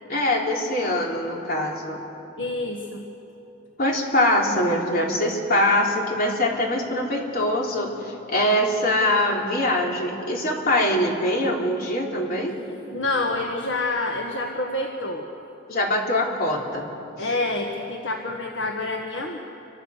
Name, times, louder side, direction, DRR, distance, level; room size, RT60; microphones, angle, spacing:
voice 1, 0.1-2.0 3.8-12.6 15.7-16.9 17.2-17.3, left 1 dB, 50° left, -1 dB, 3.5 m, -23 dB
voice 2, 2.4-3.0 12.9-15.3 17.2-19.4, left 2 dB, 65° left, 1 dB, 1.6 m, -27 dB
29.0 x 24.5 x 6.7 m, 3.0 s
head